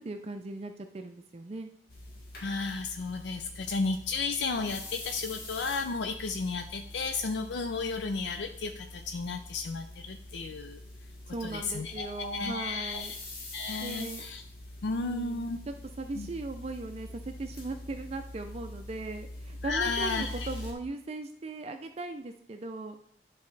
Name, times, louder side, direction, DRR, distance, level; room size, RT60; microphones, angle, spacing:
voice 1, 0.0-1.7 11.3-13.1 13.8-14.2 15.0-15.5 16.0-23.0, right 2 dB, 35° right, 6 dB, 0.4 m, -38 dB
sound 1, 1.9-20.7, left 1 dB, 55° left, 1.5 m, -45 dB
voice 2, 2.4-10.8 11.4-13.2 13.5-14.4 14.8-15.6 16.1-16.3 19.6-20.5, left 4 dB, 75° left, 6 dB, 0.4 m, -33 dB
10.5 x 4.2 x 3.3 m, 0.64 s
head